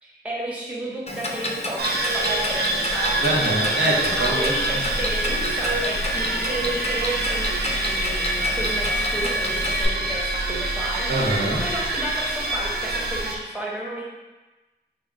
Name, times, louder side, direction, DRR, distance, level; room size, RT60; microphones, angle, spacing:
voice 1, 0.0-3.2 4.2-11.1 11.6-14.0, right 1 dB, 5° right, -5 dB, 0.9 m, -32 dB
Clock, 1.1-9.9, left 1 dB, 35° left, 0.4 m, -31 dB
sound 1, 1.8-13.3, right 2 dB, 65° right, 0.4 m, -26 dB
voice 2, 3.2-4.8 11.1-11.6, right 1 dB, 85° right, -5 dB, 0.8 m, -24 dB
3.5 x 2.1 x 3.5 m, 1.2 s
wide cardioid pair, 65°, 18 cm